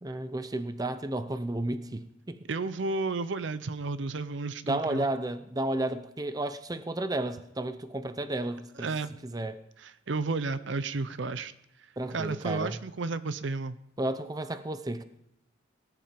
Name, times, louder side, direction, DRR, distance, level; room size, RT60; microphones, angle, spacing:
voice 1, 0.0-2.4 4.6-8.9 9.2-9.6 12.0-12.8 14.0-15.0, right 1 dB, 20° right, 0.6 m, -32 dB
voice 2, 2.5-5.1 8.8-9.1 9.8-11.5 12.1-13.8, right 3 dB, 70° right, 0.6 m, -32 dB
18.5 x 10.5 x 5.3 m
head